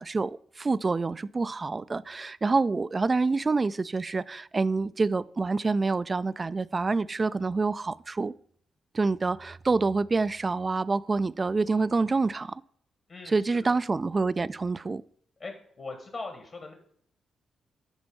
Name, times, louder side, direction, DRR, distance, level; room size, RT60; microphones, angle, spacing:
voice 1, 0.0-8.3 8.9-12.6 13.3-15.0, right 3 dB, 35° right, 0.4 m, -27 dB
voice 2, 13.1-13.8 15.4-16.7, left 3 dB, 50° left, 1.9 m, -40 dB
10.5 x 4.3 x 5.5 m
supercardioid pair, 60°, 0 cm